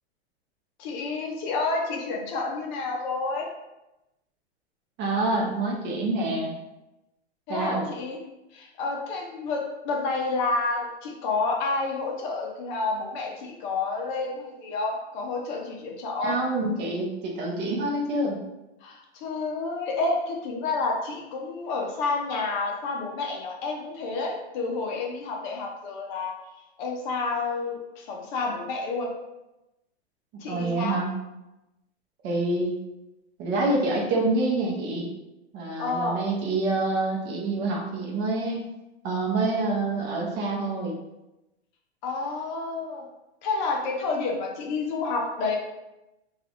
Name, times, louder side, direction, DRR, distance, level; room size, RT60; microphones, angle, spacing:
voice 1, 0.8-3.5 7.5-8.2 8.5-16.4 18.8-26.3 26.8-29.1 30.4-31.0 35.8-36.2 42.0-43.0 43.4-45.6, left 3 dB, 45° left, 0 dB, 0.6 m, -29 dB
voice 2, 5.0-6.5 7.5-7.8 16.2-18.4 30.3-31.1 32.2-32.8 33.4-35.1 35.5-38.6 39.0-41.0, right 2 dB, 30° right, -2 dB, 0.6 m, -27 dB
3.2 x 2.4 x 2.4 m, 0.96 s
hypercardioid pair, 130°, 34 cm